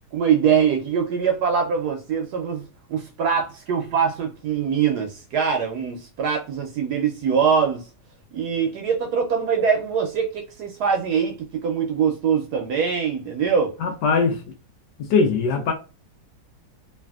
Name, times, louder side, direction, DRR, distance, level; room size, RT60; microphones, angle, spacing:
voice 1, 0.1-7.9 8.3-13.7, right 7 dB, 75° right, 1.0 m, -23 dB
voice 2, 13.8-14.4 15.0-15.7, left 4 dB, 75° left, 1.2 m, -20 dB
3.3 x 2.5 x 2.3 m
omnidirectional pair, 1.9 m